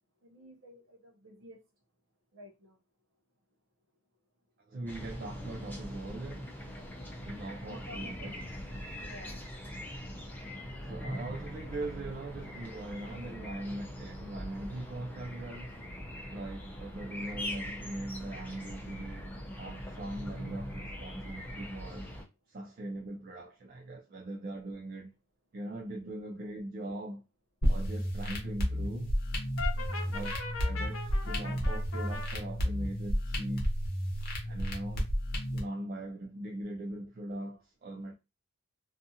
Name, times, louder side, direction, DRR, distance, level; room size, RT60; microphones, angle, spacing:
voice 1, 0.2-1.6 2.3-2.8 7.7-8.3 9.0-9.4 29.7-30.0, equal, 60° right, 0.7 m, -52 dB
voice 2, 4.7-6.5 7.2-8.3 10.8-15.8 16.3-22.1 22.5-25.1 25.5-27.2 27.7-29.1 30.0-30.3 30.6-33.7 34.4-35.1 35.5-38.1, right 1 dB, 45° right, 0.3 m, -41 dB
sound 1, 4.9-22.2, equal, 10° left, 0.5 m, -42 dB
sound 2, 27.6-35.6, equal, 45° left, 0.8 m, -32 dB
Brass instrument, 29.6-32.3, left 4 dB, 70° left, 0.7 m, -39 dB
2.6 x 2.4 x 2.7 m
head